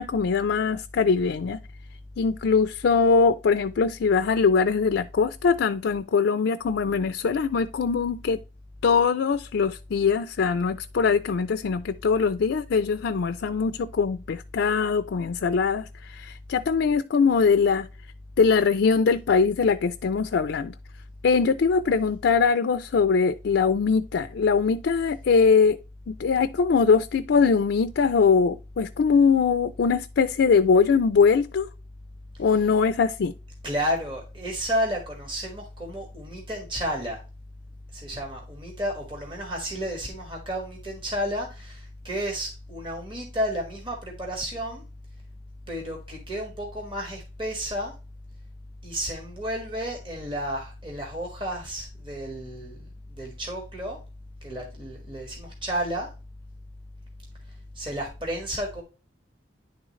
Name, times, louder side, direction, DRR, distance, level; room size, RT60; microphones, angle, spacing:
voice 1, 0.0-1.6 2.2-8.4 8.8-17.9 18.4-20.7 21.2-25.8 26.1-31.7 32.4-33.3, left 5 dB, 90° left, 0.4 m, -22 dB
voice 2, 33.6-37.2 37.9-44.9 45.7-47.9 48.8-54.0 54.4-56.1 57.7-58.8, equal, 30° right, 1.7 m, -32 dB
10.0 x 3.7 x 3.1 m
head